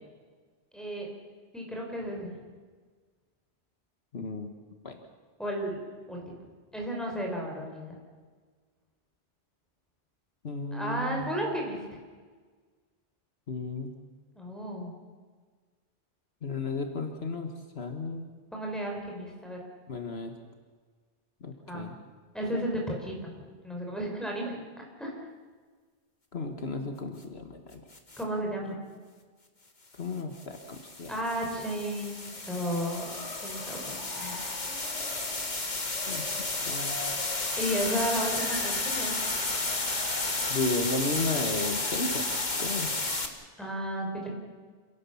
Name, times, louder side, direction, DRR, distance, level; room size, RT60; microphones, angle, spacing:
voice 1, 0.7-1.1 1.5-2.4 5.4-5.8 6.1-6.2 6.7-8.0 10.7-11.8 14.3-14.9 18.5-19.6 21.7-21.9 22.3-25.1 28.2-28.8 31.1-34.4 37.5-39.2 43.6-44.3, equal, ahead, 0 dB, 5.4 m, -33 dB
voice 2, 4.1-4.5 4.8-5.0 10.4-11.3 13.5-13.9 16.4-17.5 17.8-18.3 19.9-20.3 21.4-21.9 26.3-27.8 30.0-31.1 36.1-36.3 36.6-37.0 40.5-42.9, left 3 dB, 65° left, 4 dB, 1.8 m, -34 dB
sound 1, 27.9-28.2 30.4-43.3, left 2 dB, 40° left, 2.1 m, -32 dB
sound 2, 32.2-43.3, left 3 dB, 85° left, 2.0 m, -43 dB
27.5 x 17.5 x 7.2 m, 1.5 s
omnidirectional pair, 1.2 m